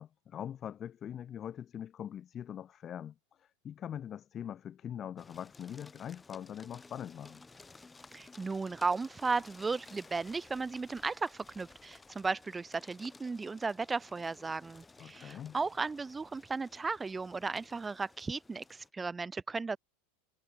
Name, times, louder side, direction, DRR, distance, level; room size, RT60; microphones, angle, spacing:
voice 1, 0.0-7.4 15.0-15.6, left 9 dB, 35° left, 1.4 m, -43 dB
sound 1, 5.2-18.9, left 3 dB, 15° left, 6.0 m, -56 dB
voice 2, 8.1-19.8, right 4 dB, 15° right, 0.8 m, -35 dB
hypercardioid pair, 90°, 0 cm